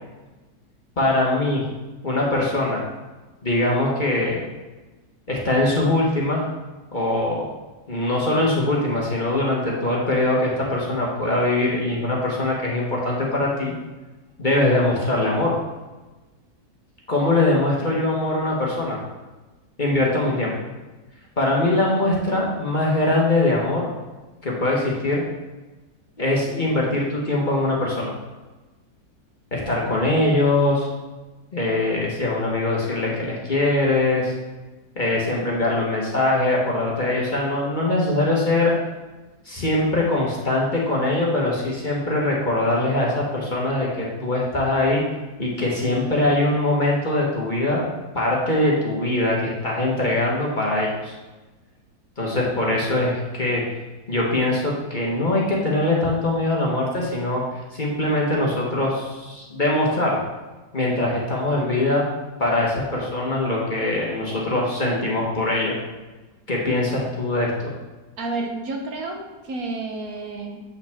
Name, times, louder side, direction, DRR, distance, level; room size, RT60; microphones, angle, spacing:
voice 1, 1.0-1.6 2.0-2.8 3.4-4.4 5.3-6.5 6.9-7.5 7.9-13.7 14.4-15.5 17.1-19.0 19.8-20.5 21.4-23.9 24.4-25.2 26.2-28.1 29.5-30.9 31.5-34.3 35.0-38.7 39.5-45.0 45.4-47.8 48.1-51.1 52.2-53.6 54.1-57.4 57.7-60.2 60.7-62.0 62.4-65.8 66.5-67.7, left 2 dB, 30° left, -4 dB, 1.3 m, -22 dB
voice 2, 68.2-70.6, right 3 dB, 65° right, 2 dB, 1.4 m, -30 dB
7.9 x 5.6 x 3.5 m, 1.2 s
omnidirectional pair, 1.7 m